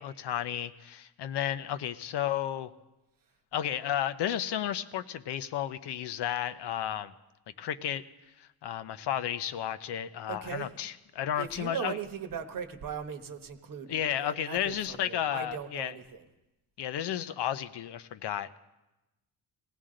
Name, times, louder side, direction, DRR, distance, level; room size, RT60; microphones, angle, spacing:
voice 1, 0.0-2.7 3.5-7.1 7.6-8.0 8.4-12.0 13.9-16.0 16.8-18.6, left 10 dB, 70° left, 11 dB, 0.7 m, -33 dB
voice 2, 10.3-10.7 11.4-16.2, right 7 dB, 50° right, 7 dB, 1.1 m, -39 dB
19.5 x 16.0 x 3.8 m, 0.99 s
cardioid pair, 155°, 42 cm